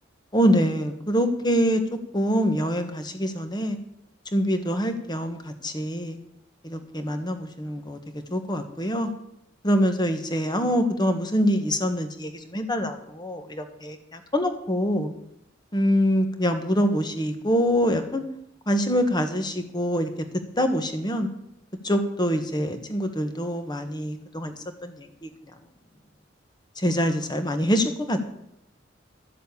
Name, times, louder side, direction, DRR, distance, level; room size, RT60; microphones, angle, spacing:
voice 1, 0.3-1.8 2.1-3.8 4.3-6.2 6.6-8.0 8.3-9.1 9.6-15.1 15.7-18.2 18.7-20.1 20.6-21.3 21.8-24.5 24.8-25.3 26.8-28.2, equal, 20° left, 7 dB, 1.4 m, -25 dB
13.0 x 7.5 x 8.5 m, 0.79 s
head